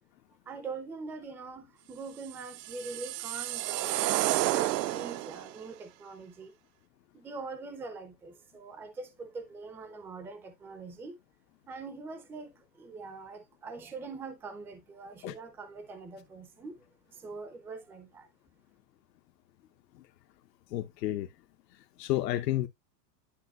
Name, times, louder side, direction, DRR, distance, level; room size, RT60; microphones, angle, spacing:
voice 1, 0.5-4.1 4.5-6.5 7.1-11.2 11.7-16.8 17.1-18.3, right 4 dB, 5° right, 0.4 m, -43 dB
sound 1, 2.3-5.5, right 16 dB, 85° right, 0.6 m, -30 dB
voice 2, 20.7-21.3 22.0-22.7, left 14 dB, 80° left, 0.9 m, -30 dB
10.0 x 5.8 x 2.3 m
supercardioid pair, 140°, 49 cm